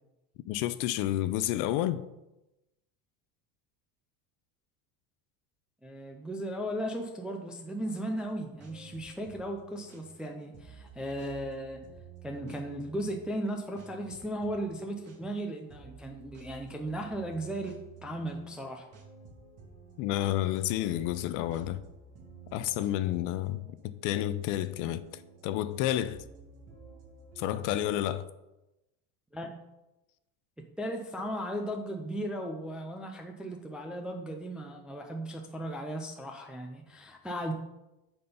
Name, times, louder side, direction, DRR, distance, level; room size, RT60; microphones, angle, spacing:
voice 1, 0.5-2.0 20.0-21.8 22.5-25.0 25.4-26.2 27.4-28.3, left 13 dB, 50° left, 0.5 m, -30 dB
voice 2, 5.8-11.8 12.2-17.7 18.0-18.8 29.3-29.5 30.8-37.5, right 1 dB, 5° right, 0.3 m, -36 dB
sound 1, 8.2-27.9, right 5 dB, 40° right, 1.5 m, -52 dB
8.5 x 4.4 x 5.5 m
cardioid pair, 155°, 41 cm